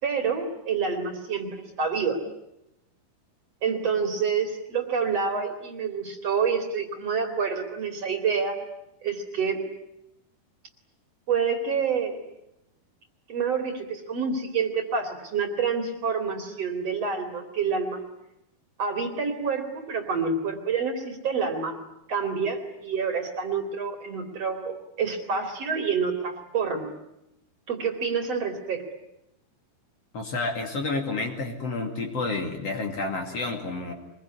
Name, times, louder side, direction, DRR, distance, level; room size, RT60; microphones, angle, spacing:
voice 1, 0.0-2.2 3.6-8.6 9.0-9.6 11.3-12.2 13.3-18.0 18.8-21.8 22.1-26.9 27.7-28.8, right 5 dB, 45° right, 5 dB, 3.4 m, -28 dB
voice 2, 30.1-33.9, left 3 dB, 45° left, 3 dB, 3.3 m, -30 dB
25.0 x 21.5 x 9.7 m, 0.85 s
omnidirectional pair, 4.3 m